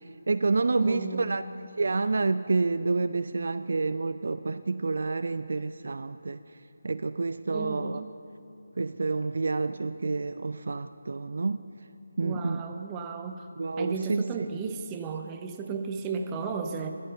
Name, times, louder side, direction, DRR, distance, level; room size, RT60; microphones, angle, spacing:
voice 1, 0.3-1.4 1.8-6.4 6.8-8.0 8.8-11.7 12.2-12.6 13.6-14.2, right 3 dB, 60° right, 12 dB, 0.3 m, -28 dB
voice 2, 0.8-1.4 7.5-8.1 9.8-10.0 12.2-13.4 13.8-16.9, right 5 dB, 15° right, 5 dB, 0.7 m, -35 dB
13.0 x 9.8 x 6.7 m, 2.8 s
figure-of-eight pair, 155°, 0 cm